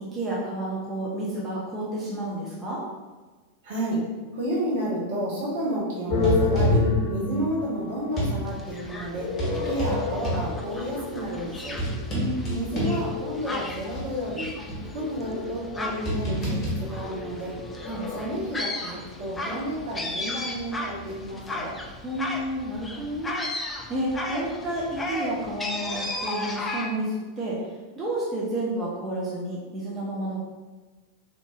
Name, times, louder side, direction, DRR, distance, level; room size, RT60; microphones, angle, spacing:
voice 1, 0.1-2.8 12.1-12.7 17.9-18.1 22.0-23.4 23.9-27.6 28.0-30.4, right 1 dB, 20° right, -6 dB, 0.7 m, -30 dB
voice 2, 3.6-4.0 4.3-11.7 12.5-14.5 14.9-17.6 18.1-21.8, equal, 55° right, -5 dB, 1.1 m, -31 dB
sound 1, 6.1-8.4 9.2-13.5 13.9-14.0 14.7-18.2, left 1 dB, 30° left, 1.0 m, -27 dB
sound 2, 8.5-26.9, left 2 dB, 15° left, 0.4 m, -36 dB
3.9 x 2.9 x 2.4 m, 1.3 s
figure-of-eight pair, 90°, 0 cm